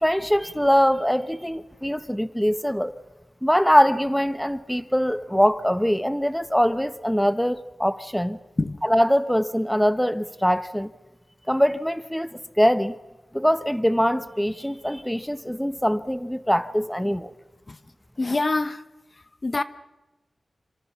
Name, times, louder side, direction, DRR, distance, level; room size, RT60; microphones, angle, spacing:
voice 1, 0.0-3.0 3.4-8.4 8.8-10.9 11.5-12.9 13.3-17.3, equal, 5° left, 1.1 m, -22 dB
voice 2, 18.2-18.8 19.4-19.6, left 2 dB, 45° left, 1.1 m, -24 dB
27.5 x 26.5 x 5.8 m
wide cardioid pair, 70°, 0 cm